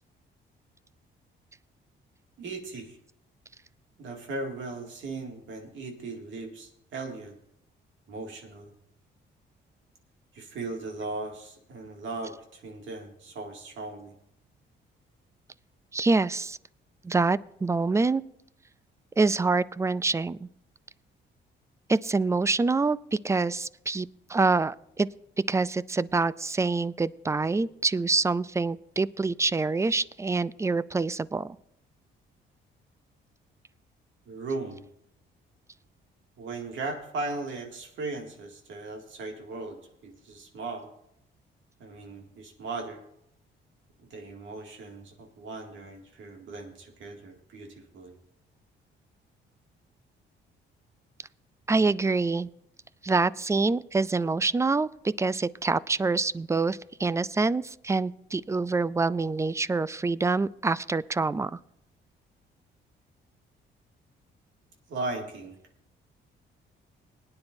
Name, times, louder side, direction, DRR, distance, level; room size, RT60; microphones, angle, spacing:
voice 1, 2.4-3.0 4.0-7.4 8.1-8.7 10.3-14.1 34.3-34.9 36.4-40.9 41.8-43.0 44.1-48.1 64.9-65.6, right 3 dB, 75° right, 2 dB, 2.3 m, -37 dB
voice 2, 15.9-16.6 17.0-18.2 19.2-20.5 21.9-23.0 23.2-25.1 25.5-31.6 51.7-52.5 53.0-54.9 55.2-61.6, right 3 dB, 15° right, 19 dB, 0.3 m, -26 dB
20.5 x 9.7 x 2.7 m, 0.77 s
cardioid pair, 90°, 20 cm